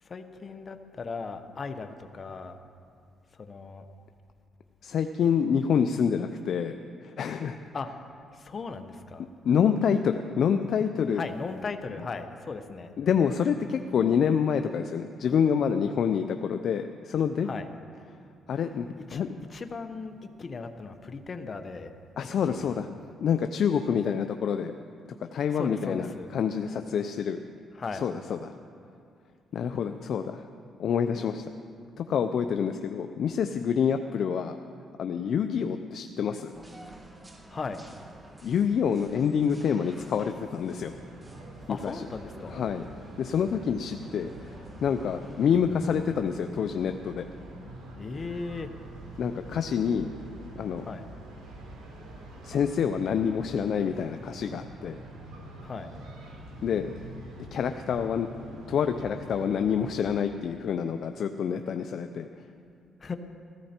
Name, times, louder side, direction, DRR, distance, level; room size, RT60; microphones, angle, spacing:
voice 1, 0.0-2.6 3.3-3.9 7.7-7.9 8.3-9.3 11.1-12.9 17.4-17.7 19.1-19.2 19.5-21.9 22.5-22.8 25.5-26.3 27.7-28.0 37.5-37.8 41.7-42.6 48.0-48.7 50.8-51.0 55.6-55.9 63.0-63.2, left 4 dB, 40° left, 8 dB, 1.0 m, -37 dB
voice 2, 4.8-6.8 7.0-7.6 9.4-11.2 13.0-17.5 18.5-19.3 22.2-22.9 23.2-24.7 25.3-27.4 28.0-28.5 29.5-30.4 30.8-31.5 32.0-34.6 35.0-36.5 38.4-40.9 41.7-41.9 42.5-42.8 43.2-47.2 49.2-50.1 50.6-50.8 52.4-55.0 56.6-56.9 57.5-58.3 58.7-62.3, left 7 dB, 65° left, 7 dB, 0.5 m, -27 dB
sound 1, 36.5-45.6, right 1 dB, 20° right, 1.5 m, -50 dB
sound 2, 40.6-60.1, right 2 dB, 80° right, 3.9 m, -45 dB
15.5 x 14.5 x 4.4 m, 2.4 s
cardioid pair, 90°, 0 cm